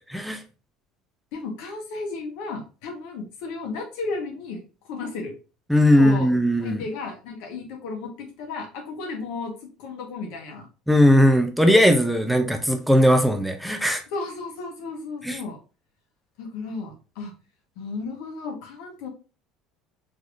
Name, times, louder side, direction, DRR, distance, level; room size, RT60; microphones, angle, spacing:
voice 1, 1.3-4.6 4.9-5.3 6.0-6.3 6.6-9.5 9.8-10.7 14.1-15.6 16.4-17.3 17.8-19.1, left 3 dB, 75° left, 2 dB, 1.2 m, -33 dB
voice 2, 5.7-6.8 10.9-14.0 15.2-15.4, equal, ahead, 5 dB, 0.7 m, -18 dB
3.9 x 3.0 x 2.5 m, 0.34 s
supercardioid pair, 80°, 0 cm